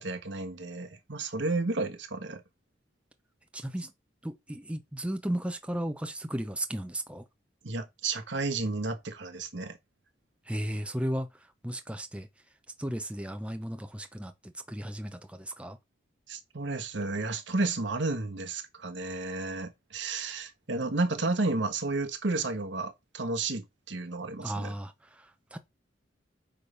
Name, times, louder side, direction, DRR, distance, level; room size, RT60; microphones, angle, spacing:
voice 1, 0.0-2.4 7.6-9.8 16.3-24.7, right 3 dB, 70° right, 1.3 m, -32 dB
voice 2, 3.5-3.9 4.2-7.2 10.4-12.3 12.8-15.8 24.4-25.6, right 1 dB, 5° right, 0.7 m, -35 dB
8.8 x 3.4 x 5.5 m
head